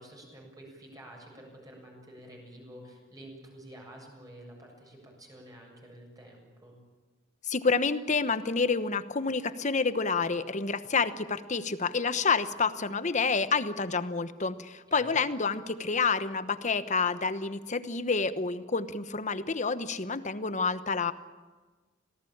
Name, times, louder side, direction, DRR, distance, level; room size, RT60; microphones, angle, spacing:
voice 1, 0.0-6.8 14.9-15.2, right 1 dB, 20° right, 0 dB, 7.2 m, -49 dB
voice 2, 7.5-21.1, left 4 dB, 40° left, 12 dB, 1.1 m, -28 dB
26.5 x 18.5 x 8.8 m, 1.3 s
head